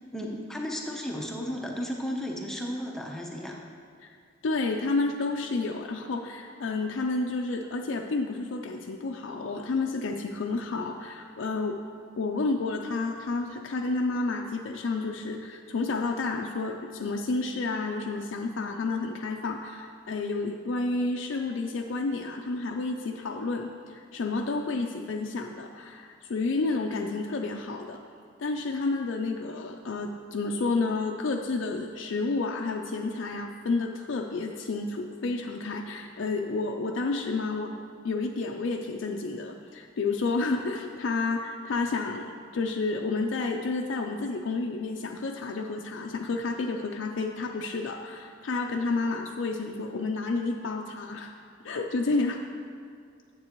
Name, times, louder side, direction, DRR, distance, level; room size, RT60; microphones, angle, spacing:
voice 1, 0.1-3.6, equal, 5° left, -1 dB, 0.7 m, -34 dB
voice 2, 4.4-11.9 12.2-28.0 28.4-51.3 51.6-52.4, left 3 dB, 85° left, 2 dB, 0.4 m, -30 dB
9.5 x 7.5 x 3.0 m, 2.3 s
head